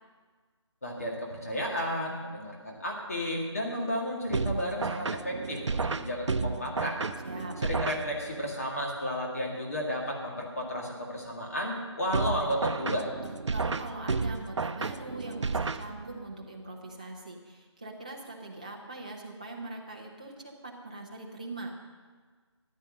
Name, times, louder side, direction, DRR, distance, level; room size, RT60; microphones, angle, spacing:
voice 1, 0.8-7.0 7.6-13.1, equal, 30° left, -2 dB, 2.0 m, -33 dB
sound 1, 4.3-8.5 12.1-16.3, right 4 dB, 75° right, 0.6 m, -32 dB
voice 2, 7.2-7.6 13.5-21.7, right 2 dB, 15° right, -1 dB, 0.8 m, -42 dB
14.0 x 9.6 x 6.5 m, 1.5 s
figure-of-eight pair, 180°, 15 cm